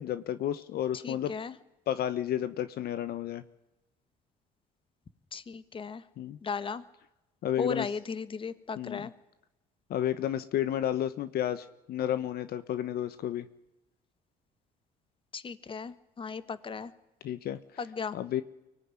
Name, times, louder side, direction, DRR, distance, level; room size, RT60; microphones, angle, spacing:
voice 1, 0.0-1.3 1.9-3.4 6.2-6.4 7.4-7.9 8.8-9.0 9.9-13.5 17.2-17.6 18.1-18.4, left 11 dB, 65° left, 13 dB, 1.1 m, -31 dB
voice 2, 0.9-1.6 5.3-6.0 6.4-6.8 7.6-9.1 15.3-16.9 17.8-18.2, left 5 dB, 30° left, 14 dB, 1.4 m, -36 dB
24.0 x 18.5 x 9.8 m, 0.95 s
cardioid pair, 110°, 17 cm